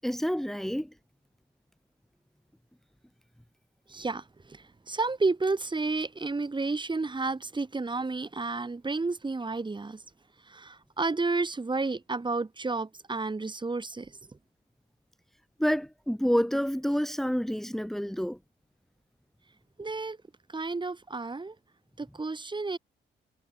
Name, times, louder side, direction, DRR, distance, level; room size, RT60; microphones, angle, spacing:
voice 1, 0.0-0.9 15.6-18.4, equal, ahead, 4.7 m, -28 dB
voice 2, 3.9-10.0 10.5-14.1 19.8-20.2 20.5-21.5 22.0-22.8, right 3 dB, 25° right, 7.3 m, -31 dB
cardioid pair, 90°, 20 cm